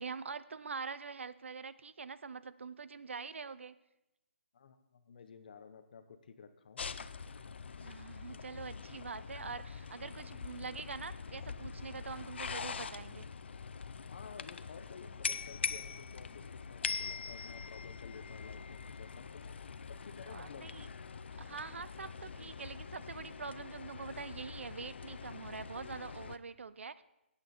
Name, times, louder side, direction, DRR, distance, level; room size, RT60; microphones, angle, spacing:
voice 1, 0.0-3.8 7.8-13.3 20.3-20.9 21.4-27.0, right 5 dB, 85° right, 16 dB, 0.6 m, -44 dB
voice 2, 4.5-6.9 14.1-20.7, left 6 dB, 45° left, 10 dB, 1.0 m, -53 dB
sound 1, 6.8-26.4, left 5 dB, 65° left, 0.6 m, -43 dB
14.5 x 8.8 x 4.3 m, 0.92 s
hypercardioid pair, 170°, 6 cm